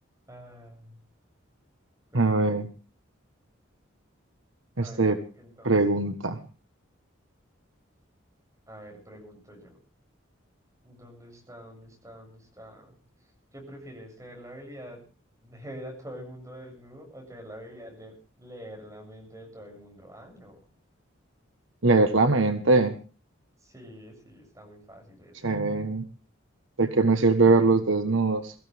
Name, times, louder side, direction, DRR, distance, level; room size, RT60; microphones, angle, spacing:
voice 1, 0.3-1.0 2.1-2.5 4.8-5.1 5.3-5.7 8.7-9.7 10.8-12.9 13.5-15.0 15.4-20.6 23.6-25.5, equal, 15° right, 2 dB, 7.8 m, -45 dB
voice 2, 2.1-2.6 4.8-5.2 5.6-6.4 21.8-23.0 25.4-26.1 26.8-28.5, right 3 dB, 70° right, 7 dB, 1.5 m, -22 dB
24.0 x 15.0 x 3.5 m, 0.36 s
head